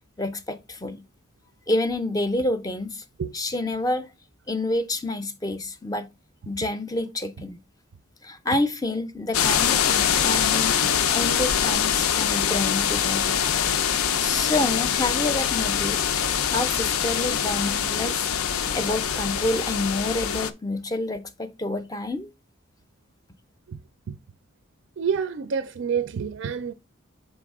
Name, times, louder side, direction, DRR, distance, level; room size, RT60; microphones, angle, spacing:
voice 1, 0.2-1.0 1.7-3.0 3.3-4.1 4.5-6.1 6.5-7.6 8.2-10.8 11.1-13.4 14.2-16.1 16.5-18.3 18.7-22.3, left 2 dB, 15° left, 0.4 m, -28 dB
sound 1, 9.3-20.5, left 8 dB, 90° left, 0.5 m, -24 dB
voice 2, 25.0-26.7, right 6 dB, 65° right, 0.4 m, -27 dB
6.2 x 4.6 x 3.5 m
head